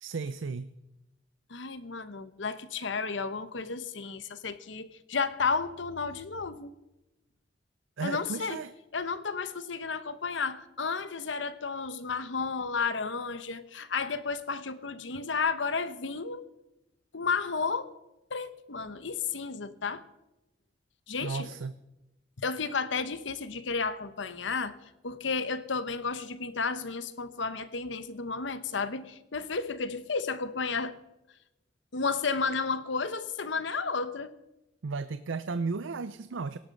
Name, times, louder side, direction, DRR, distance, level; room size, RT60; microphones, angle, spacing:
voice 1, 0.0-0.7 8.0-8.7 21.2-21.7 34.8-36.6, right 4 dB, 80° right, 13 dB, 0.5 m, -34 dB
voice 2, 1.5-6.7 8.0-8.6 8.9-16.4 17.1-17.9 18.3-20.0 21.1-21.5 22.4-24.8 25.0-31.0 31.9-34.3, left 4 dB, 70° left, 13 dB, 1.0 m, -32 dB
17.5 x 11.5 x 5.3 m, 0.95 s
head